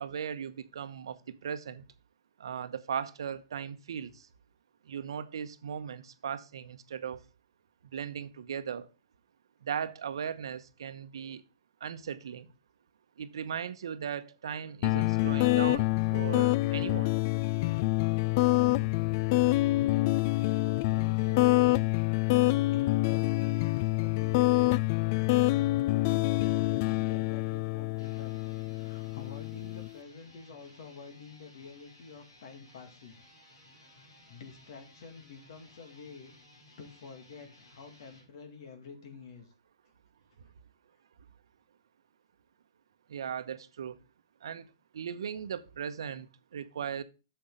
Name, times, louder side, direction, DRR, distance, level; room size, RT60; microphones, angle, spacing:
voice 1, 0.0-1.8 2.4-4.3 4.9-7.2 7.9-8.9 9.6-11.4 11.8-12.5 13.2-17.1 43.1-44.0 44.4-44.7 44.9-47.0, right 8 dB, 70° right, 0.9 m, -38 dB
sound 1, 14.8-29.9, left 19 dB, 45° left, 0.3 m, -26 dB
voice 2, 19.6-20.1 20.9-21.8 22.7-24.7 25.0-28.4 28.7-33.2 33.7-36.3 36.8-39.5, left 5 dB, 60° left, 2.0 m, -49 dB
sound 2, 27.9-38.3, left 2 dB, 90° left, 5.4 m, -58 dB
8.9 x 7.1 x 3.8 m
hypercardioid pair, 120°, 3 cm